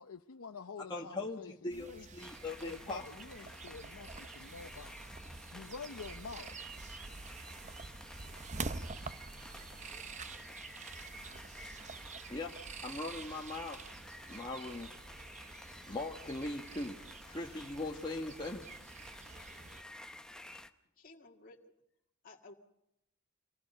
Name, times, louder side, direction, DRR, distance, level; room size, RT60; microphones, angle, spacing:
voice 1, 0.0-2.0 2.6-5.0 5.5-6.5, left 5 dB, 75° left, 7 dB, 0.7 m, -48 dB
voice 2, 0.8-3.2 11.6-11.7 12.3-13.8 14.3-14.9 15.9-18.7, left 2 dB, 20° left, -1 dB, 1.4 m, -40 dB
sound 1, 1.7-19.8, right 4 dB, 35° right, 0.8 m, -47 dB
sound 2, 2.2-20.7, left 1 dB, 5° left, 0.9 m, -52 dB
voice 3, 21.0-21.7 22.2-22.5, left 2 dB, 40° left, -1 dB, 1.9 m, -55 dB
26.0 x 19.5 x 5.5 m, 0.82 s
head